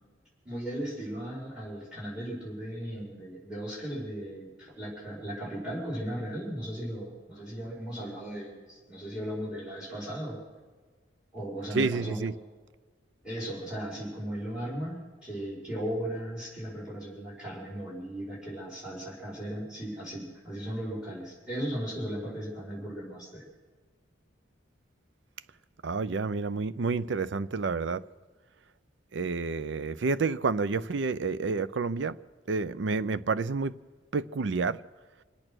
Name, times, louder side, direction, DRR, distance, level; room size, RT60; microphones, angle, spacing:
voice 1, 0.4-10.4 11.3-12.3 13.2-23.4, equal, 5° right, 5.1 m, -37 dB
voice 2, 11.7-12.3 25.8-28.0 29.1-32.2 32.5-33.7 34.1-34.8, right 4 dB, 70° right, 0.5 m, -29 dB
25.5 x 8.8 x 6.2 m
head